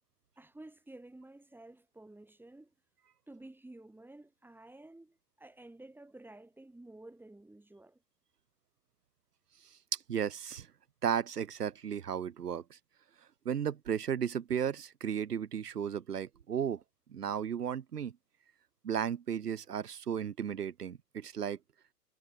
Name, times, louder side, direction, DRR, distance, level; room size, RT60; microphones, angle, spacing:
voice 1, 0.4-2.7 3.3-8.0, right 2 dB, 5° right, 6.0 m, -52 dB
voice 2, 9.9-10.7 11.0-12.8 13.4-16.8 17.1-18.1 18.8-21.6, right 8 dB, 75° right, 2.6 m, -34 dB
hypercardioid pair, 105°, 47 cm